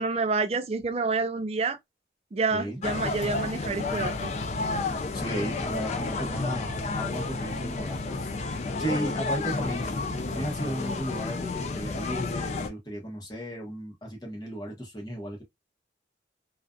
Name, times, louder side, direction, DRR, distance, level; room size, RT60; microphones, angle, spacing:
voice 1, 0.0-1.8 2.3-4.3, right 4 dB, 35° right, 0.4 m, -28 dB
sound 1, 2.8-12.7, left 3 dB, 40° left, 0.3 m, -31 dB
voice 2, 5.1-10.0 10.3-15.4, equal, 20° left, 0.9 m, -35 dB
2.4 x 2.4 x 2.3 m
head